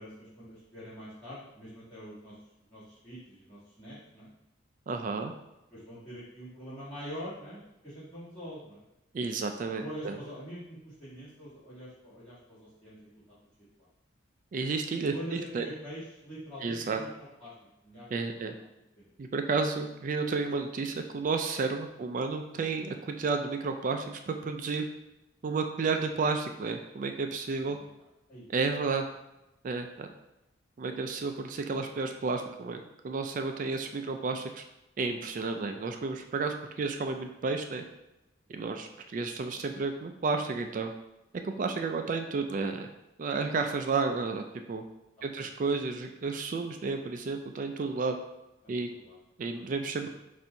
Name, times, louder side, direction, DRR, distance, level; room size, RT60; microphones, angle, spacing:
voice 1, 0.0-2.3 2.7-4.3 5.7-8.8 9.8-13.0 13.8-13.9 15.1-17.1 17.4-17.5 17.8-18.2 18.9-19.1 27.6-28.5 38.5-38.6 45.2-45.5 48.6-49.2 49.5-49.7, equal, 5° left, -14 dB, 1.5 m, -44 dB
voice 2, 4.9-5.3 9.1-10.2 14.5-15.7 16.6-17.0 18.1-18.5 19.2-24.8 25.4-27.8 28.5-29.1 29.6-30.1 30.8-34.6 35.0-37.8 38.5-40.9 41.4-42.9 43.2-44.8 45.2-48.2 48.7-48.9 49.4-50.1, right 4 dB, 40° right, 6 dB, 0.3 m, -32 dB
4.2 x 2.6 x 4.4 m, 0.95 s
head